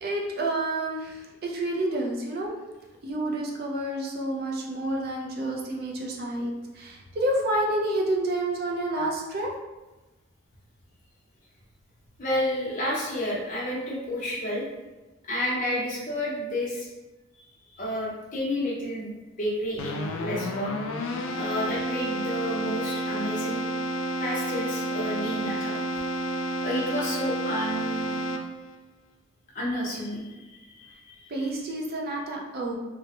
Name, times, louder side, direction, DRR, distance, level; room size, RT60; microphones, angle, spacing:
voice 1, 0.0-2.6 3.0-9.5 31.3-32.7, right 1 dB, 45° right, -1 dB, 0.4 m, -29 dB
voice 2, 12.2-14.7 15.2-16.9 17.4-17.5 17.7-19.1 19.4-20.8 21.3-23.6 24.2-25.8 26.6-28.1 29.5-31.5, equal, 35° left, -4 dB, 0.7 m, -30 dB
Keyboard (musical), 19.8-28.8, right 1 dB, 70° left, 0.3 m, -30 dB
3.3 x 2.1 x 2.8 m, 1.1 s
head